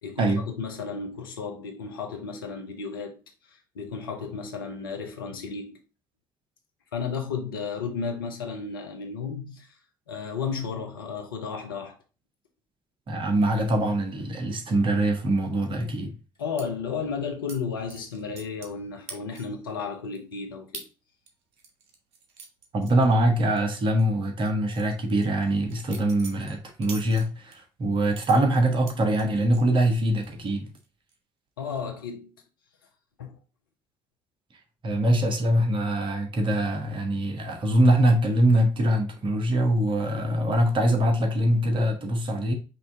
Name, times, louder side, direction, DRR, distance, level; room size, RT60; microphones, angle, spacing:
voice 1, 0.0-5.8 6.9-9.8 10.1-12.0 16.4-20.8 31.6-32.3 33.2-33.3, left 5 dB, 85° left, 0.7 m, -33 dB
voice 2, 13.1-16.1 22.7-27.5 27.8-30.7 34.8-42.5, right 1 dB, 45° right, 1.2 m, -23 dB
sound 1, 16.6-16.7 17.5-17.6 17.9-18.8 19.1-19.6 20.0-20.1 20.7-20.9 21.3-23.6 23.9-24.0 24.5-27.6 28.1-29.7 30.1-30.5 30.8-31.1, right 5 dB, 65° right, 0.9 m, -44 dB
5.4 x 2.7 x 3.7 m
figure-of-eight pair, 50°, 11 cm